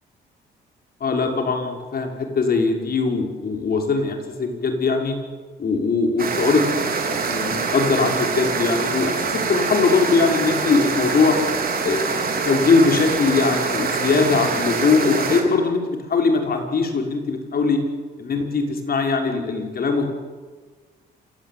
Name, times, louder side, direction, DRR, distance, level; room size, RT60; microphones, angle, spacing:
voice 1, 1.0-5.1 5.6-6.6 7.0-11.4 11.8-12.1 12.4-17.8 18.2-20.1, left 4 dB, 50° left, 3 dB, 5.9 m, -21 dB
sound 1, 6.2-15.4, right 5 dB, 50° right, 4.7 m, -24 dB
27.5 x 17.5 x 9.6 m, 1.4 s
cardioid pair, 90°, 20 cm